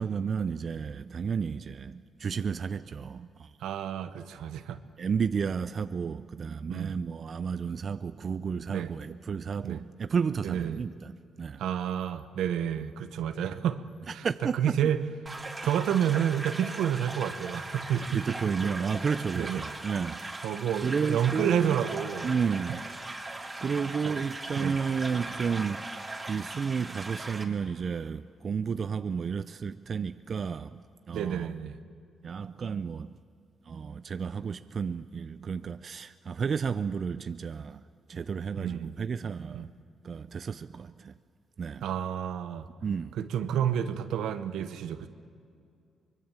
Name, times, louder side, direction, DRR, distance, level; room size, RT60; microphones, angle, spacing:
voice 1, 0.0-3.5 5.0-11.6 14.2-14.5 18.1-20.2 20.8-21.8 22.2-22.8 23.6-30.8 31.1-31.5 32.2-33.2 33.7-37.8 38.1-39.7 40.0-41.1 41.6-41.8 42.8-43.2, right 6 dB, 50° right, 12 dB, 0.5 m, -32 dB
voice 2, 3.6-4.8 6.7-7.0 8.7-8.9 9.6-9.8 10.4-10.8 11.6-13.8 14.1-15.1 15.6-18.9 19.3-19.6 20.4-22.3 24.0-24.2 24.6-24.8 31.1-31.8 38.6-39.0 39.5-39.7 41.8-42.7 43.1-45.1, right 9 dB, 85° right, 11 dB, 1.2 m, -30 dB
sound 1, 15.3-27.4, right 2 dB, 20° right, 2.7 m, -39 dB
24.0 x 22.0 x 7.3 m, 2.4 s
cardioid pair, 90°, 0 cm